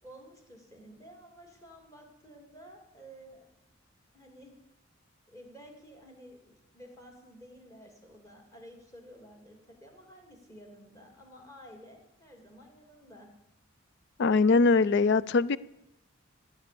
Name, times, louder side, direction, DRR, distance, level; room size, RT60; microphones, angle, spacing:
voice 1, 0.0-3.5 4.1-4.6 5.3-13.3, equal, 15° left, 2 dB, 2.7 m, -52 dB
voice 2, 14.2-15.6, left 4 dB, 55° left, 19 dB, 0.4 m, -22 dB
14.0 x 8.9 x 6.9 m, 0.92 s
head